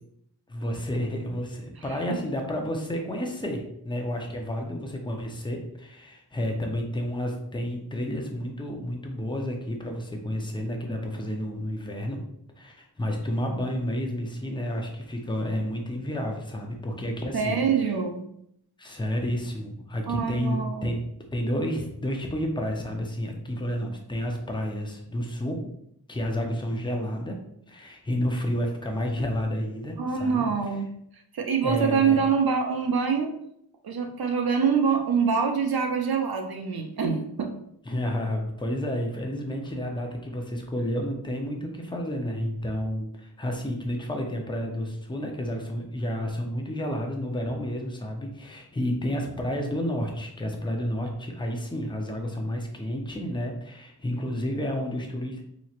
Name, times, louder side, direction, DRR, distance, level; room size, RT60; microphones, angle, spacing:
voice 1, 0.5-12.2 12.6-17.6 18.8-21.0 21.3-25.7 26.1-27.4 27.7-30.5 31.6-32.2 37.9-55.4, equal, 10° left, 2 dB, 0.6 m, -30 dB
voice 2, 1.9-2.2 17.3-18.2 20.1-20.9 30.0-30.9 31.3-33.3 33.8-37.5, right 6 dB, 65° right, 3 dB, 0.6 m, -25 dB
4.1 x 3.0 x 2.4 m, 0.72 s
wide cardioid pair, 100°, 39 cm